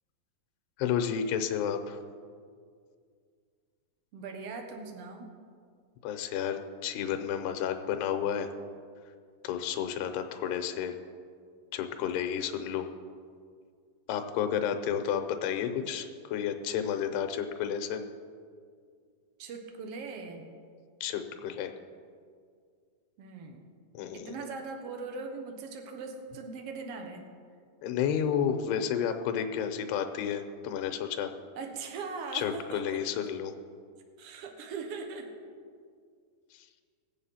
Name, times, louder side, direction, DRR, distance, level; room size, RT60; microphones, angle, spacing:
voice 1, 0.8-2.0 6.0-8.5 9.4-10.9 11.7-12.9 14.1-18.0 21.0-21.7 23.9-24.3 27.8-31.3 32.3-33.5 36.5-36.7, left 8 dB, 90° left, 7 dB, 2.9 m, -31 dB
voice 2, 4.1-5.3 19.4-20.5 23.2-23.6 24.1-27.2 31.6-33.0 34.2-35.3, right 4 dB, 90° right, 3 dB, 1.3 m, -40 dB
20.0 x 8.0 x 5.7 m, 2.1 s
omnidirectional pair, 4.7 m